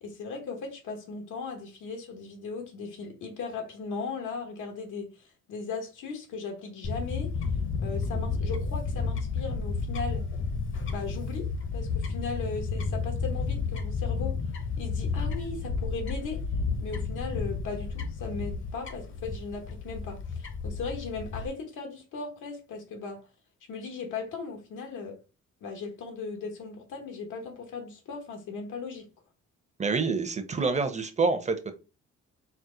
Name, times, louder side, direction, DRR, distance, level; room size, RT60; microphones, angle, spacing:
voice 1, 0.0-7.3 7.8-10.3 10.9-14.4 14.8-16.5 16.8-23.2 23.7-25.2 25.6-29.1, left 4 dB, 80° left, 1.2 m, -37 dB
Fowl / Bird, 6.8-21.5, left 4 dB, 40° left, 0.8 m, -32 dB
voice 2, 29.8-31.7, right 4 dB, 25° right, 0.7 m, -27 dB
4.5 x 2.0 x 3.8 m
cardioid pair, 90°, 30 cm